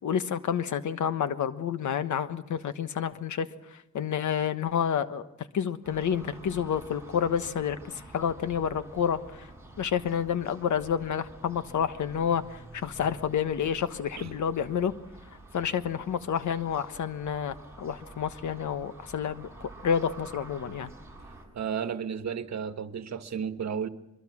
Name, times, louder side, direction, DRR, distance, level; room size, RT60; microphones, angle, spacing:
voice 1, 0.0-9.5 9.8-14.9 15.5-20.9, left 8 dB, 90° left, 11 dB, 1.3 m, -29 dB
sound 1, 5.8-21.4, right 2 dB, 10° right, 7.3 m, -48 dB
voice 2, 21.5-23.9, right 7 dB, 65° right, 9 dB, 1.4 m, -33 dB
23.5 x 23.0 x 6.2 m, 0.91 s
wide cardioid pair, 110°, 29 cm